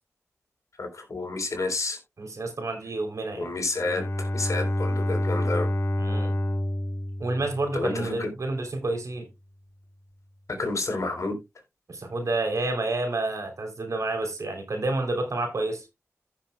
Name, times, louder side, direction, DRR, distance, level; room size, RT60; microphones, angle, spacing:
voice 1, 0.8-2.0 3.4-5.7 7.7-8.3 10.5-11.4, left 3 dB, 75° left, 3.7 m, -30 dB
voice 2, 2.2-3.5 6.0-6.3 7.2-9.3 11.9-15.9, right 2 dB, 75° right, 3.2 m, -29 dB
Bowed string instrument, 3.8-8.1, left 1 dB, 55° left, 1.9 m, -28 dB
15.0 x 6.9 x 2.2 m
cardioid pair, 50°, 5 cm